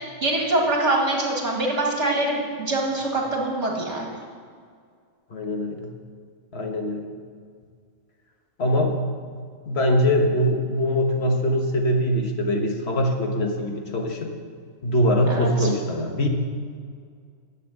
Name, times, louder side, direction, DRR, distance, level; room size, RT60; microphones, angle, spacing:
voice 1, 0.2-4.2 15.3-15.7, right 2 dB, 55° right, -1 dB, 2.4 m, -24 dB
voice 2, 5.3-5.9 6.5-7.1 8.6-9.0 9.7-14.3 14.8-16.3, equal, 50° left, 2 dB, 1.5 m, -22 dB
10.5 x 7.6 x 7.9 m, 2.1 s
omnidirectional pair, 1.4 m